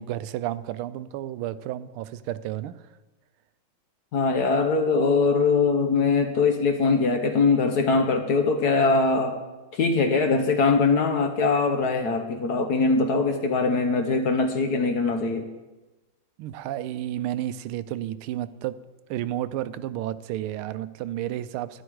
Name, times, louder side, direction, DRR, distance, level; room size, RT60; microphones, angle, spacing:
voice 1, 0.0-2.8 16.4-18.8 19.1-21.8, right 13 dB, 85° right, 14 dB, 1.4 m, -31 dB
voice 2, 4.1-9.4 9.7-15.5, left 4 dB, 60° left, 5 dB, 1.2 m, -22 dB
11.0 x 10.5 x 4.7 m, 1.1 s
omnidirectional pair, 2.3 m